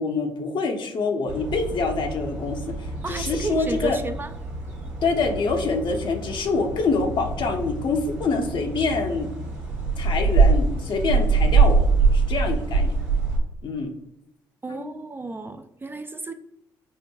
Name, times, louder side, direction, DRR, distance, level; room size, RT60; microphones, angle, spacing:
voice 1, 0.0-4.0 5.0-9.3 10.0-11.8 12.1-12.9 13.6-13.9 14.7-15.0, left 4 dB, 55° left, 4 dB, 0.7 m, -26 dB
sound 1, 1.3-13.4, right 4 dB, 85° right, 1.1 m, -24 dB
voice 2, 3.0-4.3 14.6-16.3, right 3 dB, 20° right, 8 dB, 0.3 m, -32 dB
4.5 x 2.5 x 2.3 m, 0.84 s
hypercardioid pair, 50°, 10 cm